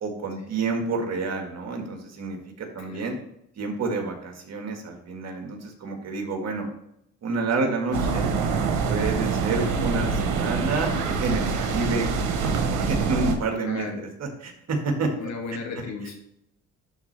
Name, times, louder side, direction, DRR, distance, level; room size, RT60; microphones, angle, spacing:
voice 1, 0.0-3.2 3.6-6.7 7.2-8.3 8.9-12.1 12.7-15.1, right 3 dB, 60° right, 3 dB, 1.8 m, -29 dB
sound 1, 7.9-13.3, right 5 dB, 85° right, 1.1 m, -25 dB
voice 2, 9.6-9.9 13.6-14.0 15.2-16.2, left 3 dB, 65° left, 1 dB, 1.9 m, -35 dB
11.0 x 3.7 x 3.3 m, 0.77 s
cardioid pair, 90°, 30 cm